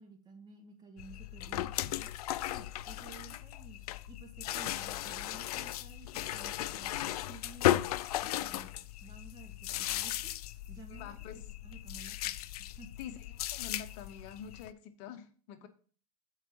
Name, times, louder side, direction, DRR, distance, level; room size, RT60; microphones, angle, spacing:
voice 1, 0.0-2.1 2.5-3.8 4.1-7.9 8.2-8.7 9.0-12.9 15.6-15.7, right 3 dB, 20° right, 1.7 m, -53 dB
sound 1, 1.0-14.7, left 14 dB, 75° left, 0.4 m, -36 dB
voice 2, 10.9-11.5 13.0-15.7, left 8 dB, 50° left, 0.8 m, -46 dB
7.3 x 4.6 x 6.1 m
supercardioid pair, 140°, 19 cm